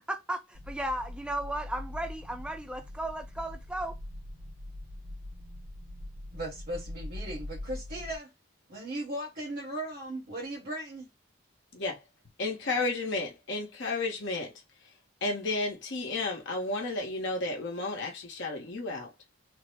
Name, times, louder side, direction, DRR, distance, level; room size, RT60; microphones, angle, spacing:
voice 1, 0.1-3.9, right 1 dB, 5° right, 0.3 m, -35 dB
sound 1, 0.5-8.2, left 1 dB, 90° right, 1.0 m, -42 dB
voice 2, 6.3-8.3 8.7-11.1, right 1 dB, 50° right, 1.2 m, -37 dB
voice 3, 12.4-14.5 14.8-14.9 15.2-19.1, left 3 dB, 55° left, 0.9 m, -32 dB
3.4 x 2.0 x 3.3 m
head